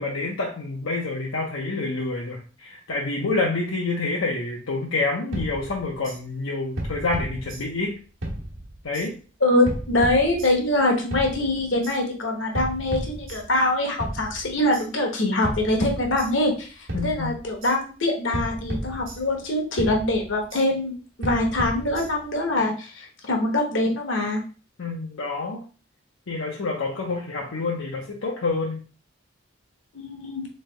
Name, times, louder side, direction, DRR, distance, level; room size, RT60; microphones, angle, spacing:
voice 1, 0.0-8.0 8.8-9.2 16.9-17.3 24.8-25.6 26.3-28.8, left 3 dB, 85° left, -2 dB, 0.7 m, -28 dB
sound 1, 5.3-6.2 6.8-7.9 8.2-9.1 9.6-10.7 11.1-12.0 12.5-13.7 14.0-14.9 15.4-16.6 16.9-17.7 18.3-19.5 19.8-20.6 21.2-22.4, right 1 dB, 75° right, 1.1 m, -33 dB
voice 2, 9.4-24.4 29.9-30.5, left 1 dB, 70° left, 1 dB, 1.1 m, -24 dB
3.7 x 3.3 x 3.2 m, 0.36 s
head